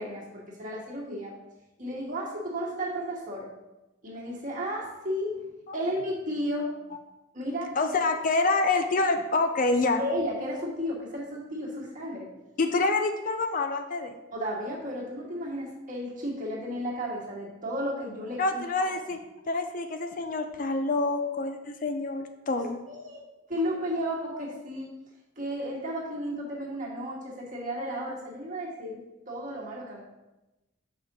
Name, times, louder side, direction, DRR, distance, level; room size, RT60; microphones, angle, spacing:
voice 1, 0.0-1.3 1.8-3.5 4.0-5.4 5.7-6.7 7.3-7.7 10.0-12.3 14.3-18.4 22.6-24.9 25.4-30.0, equal, 40° right, -3 dB, 1.6 m, -33 dB
voice 2, 7.8-10.0 12.6-14.1 18.4-19.2 19.5-22.8, left 3 dB, 40° left, 7 dB, 0.4 m, -27 dB
6.8 x 5.0 x 4.1 m, 1.0 s
head